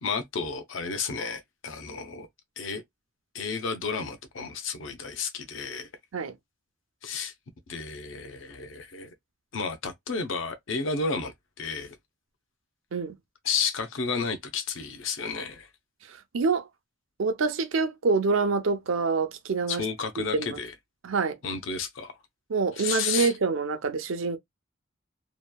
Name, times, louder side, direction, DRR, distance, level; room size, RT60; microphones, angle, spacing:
voice 1, 0.0-2.3 2.6-2.8 3.3-5.9 7.0-7.3 7.7-9.1 9.5-12.0 13.4-15.7 19.7-20.7 21.4-22.1 22.8-23.3, left 5 dB, 75° left, 0.6 m, -32 dB
voice 2, 16.3-16.7 17.2-19.8 20.3-20.5 21.0-21.4 22.5-24.4, right 4 dB, 80° right, 0.6 m, -26 dB
2.9 x 2.2 x 2.2 m
head